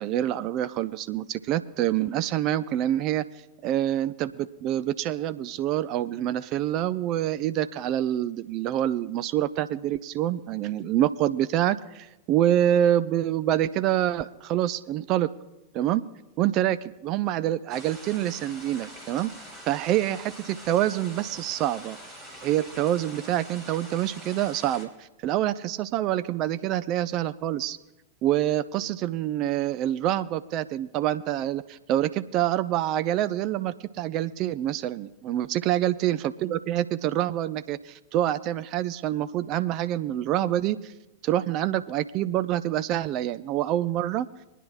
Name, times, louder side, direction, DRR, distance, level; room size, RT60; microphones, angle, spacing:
voice 1, 0.0-3.2 3.6-15.3 15.7-16.0 16.4-19.3 19.7-22.0 22.4-24.9 25.2-27.8 28.2-40.9 41.2-44.3, right 12 dB, 40° right, 13 dB, 0.4 m, -26 dB
sound 1, 17.7-24.9, equal, 15° right, 3.4 m, -44 dB
26.0 x 9.9 x 2.5 m, 0.99 s
figure-of-eight pair, 90°, 0 cm